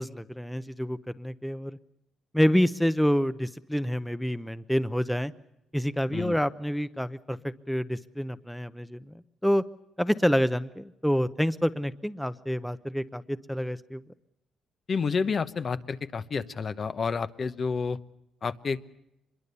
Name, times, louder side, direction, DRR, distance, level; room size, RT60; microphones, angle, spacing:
voice 1, 0.0-1.8 2.3-5.3 5.7-9.1 9.4-9.6 10.0-14.0, equal, 5° left, 13 dB, 0.8 m, -27 dB
voice 2, 14.9-18.0 18.4-18.8, left 5 dB, 45° left, 11 dB, 1.0 m, -29 dB
25.0 x 22.0 x 6.9 m, 0.88 s
cardioid pair, 90°, 0 cm